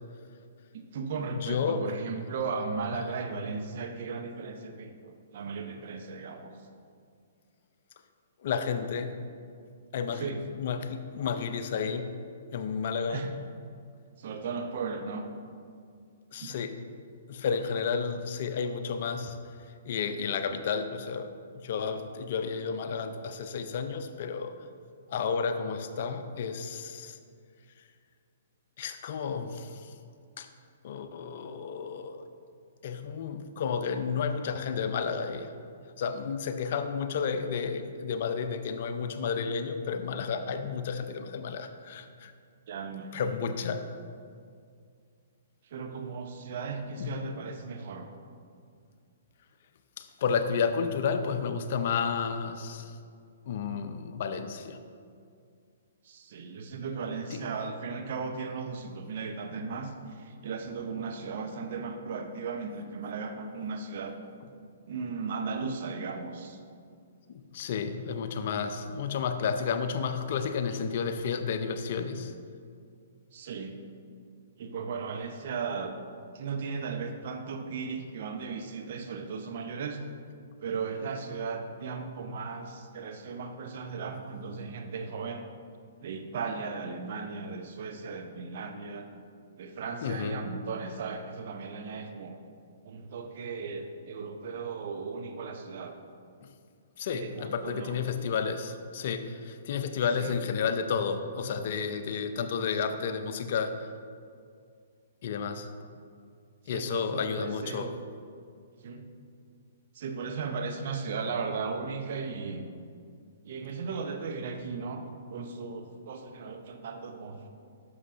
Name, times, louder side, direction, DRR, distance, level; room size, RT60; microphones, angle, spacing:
voice 1, 0.7-6.6 10.1-10.4 13.1-13.3 14.2-15.3 16.4-16.5 42.7-43.4 45.7-48.1 56.0-59.9 60.2-64.2 64.9-66.6 73.3-73.7 74.6-76.0 76.3-80.0 80.6-85.4 86.0-89.1 89.6-92.4 92.8-95.9 97.1-97.9 100.2-100.3 106.7-107.9 108.8-109.1 109.9-112.7 113.4-117.5, right 5 dB, 55° right, 5 dB, 0.7 m, -36 dB
voice 2, 1.3-1.9 2.9-3.1 8.4-9.2 9.9-12.2 12.5-13.3 16.3-16.8 17.3-19.4 19.9-24.6 25.1-27.2 28.8-29.9 30.4-30.5 30.8-32.3 32.8-35.6 36.0-42.3 43.1-43.9 47.0-47.3 50.0-53.0 53.5-54.8 57.3-57.5 67.3-72.3 90.0-90.5 96.4-96.5 97.0-103.9 105.2-105.7 106.7-108.0, left 6 dB, 55° left, 9 dB, 0.5 m, -32 dB
11.0 x 6.3 x 2.6 m, 2.3 s
hypercardioid pair, 125°, 0 cm